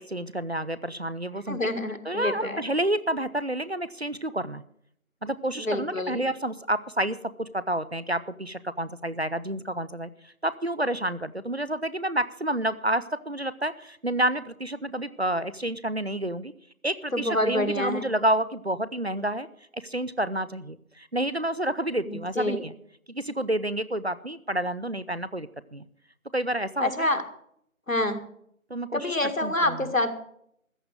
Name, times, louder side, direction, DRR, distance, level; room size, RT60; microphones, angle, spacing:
voice 1, 0.0-1.7 2.0-4.6 5.2-16.5 16.8-19.5 19.7-22.7 23.1-25.9 26.3-26.9 28.7-29.2 29.4-29.8, right 1 dB, 50° right, 16 dB, 0.6 m, -29 dB
voice 2, 1.5-2.6 5.6-6.2 17.1-18.0 22.0-22.6 26.8-27.2 27.9-28.2 28.9-30.1, left 1 dB, 65° left, 9 dB, 1.9 m, -27 dB
14.5 x 9.1 x 6.5 m, 0.69 s
figure-of-eight pair, 165°, 42 cm